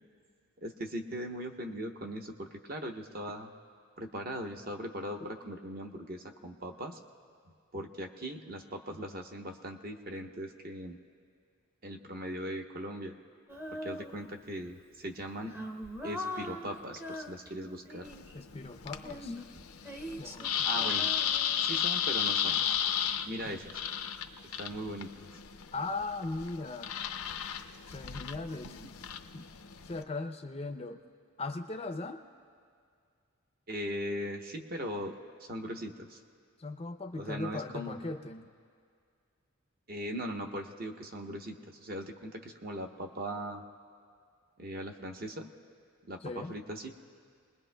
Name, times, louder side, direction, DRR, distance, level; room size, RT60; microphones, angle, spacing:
voice 1, 0.6-3.5 4.0-7.0 7.7-11.0 11.8-13.1 13.7-15.5 16.0-18.1 20.7-21.1 21.6-22.6 23.2-23.8 24.6-25.4 28.6-28.9 33.7-36.2 37.1-38.0 39.9-43.6 44.6-45.5 46.1-46.9, equal, 45° right, 3 dB, 0.9 m, -39 dB
Female singing, 13.5-14.6 15.1-18.4 19.0-22.2, left 1 dB, 10° right, 0.7 m, -42 dB
sound 1, 18.0-30.0, left 9 dB, 85° left, 0.6 m, -34 dB
voice 2, 18.3-19.4 20.2-21.0 23.5-23.6 25.7-26.9 27.9-28.7 29.3-29.5 29.9-31.0 31.4-32.2 36.6-38.5 46.2-46.5, left 3 dB, 25° left, 6 dB, 0.5 m, -38 dB
29.5 x 20.5 x 2.2 m, 2.2 s
head